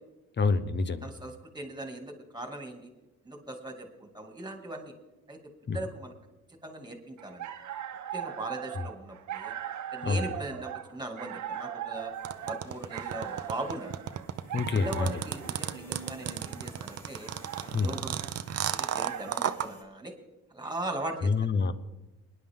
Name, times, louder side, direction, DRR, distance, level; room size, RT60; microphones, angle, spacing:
voice 1, 0.4-1.1 5.7-5.8 10.0-10.3 14.5-15.1 17.7-17.9 21.2-21.7, left 4 dB, 35° left, 13 dB, 0.9 m, -27 dB
voice 2, 1.0-2.9 3.2-4.9 5.3-5.4 5.7-6.1 6.6-7.5 8.1-9.5 9.9-12.1 12.5-14.0 14.8-17.3 17.8-18.2 18.7-20.1 20.5-21.3, right 2 dB, 15° right, 4 dB, 2.4 m, -39 dB
sound 1, 7.2-19.6, right 10 dB, 75° right, 1.2 m, -40 dB
sound 2, 12.1-19.8, right 1 dB, 10° left, 3.4 m, -52 dB
sound 3, 12.2-19.7, right 10 dB, 55° right, 0.7 m, -32 dB
23.5 x 10.5 x 3.7 m, 1.1 s
cardioid pair, 90°, 30 cm